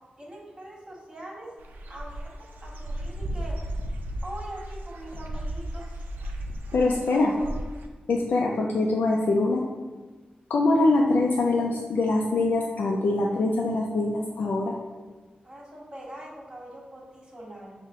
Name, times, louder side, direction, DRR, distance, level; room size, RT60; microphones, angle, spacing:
voice 1, 0.2-1.5 1.9-3.6 4.2-6.1 7.1-7.5 15.4-17.7, right 1 dB, 25° right, -3 dB, 1.4 m, -42 dB
Dog / Bird, 1.6-7.9, right 1 dB, 85° right, 0.4 m, -35 dB
voice 2, 6.7-7.3 8.1-9.6 10.5-14.7, left 2 dB, 80° left, -1 dB, 0.4 m, -23 dB
5.6 x 2.1 x 3.6 m, 1.3 s
cardioid pair, 60°, 3 cm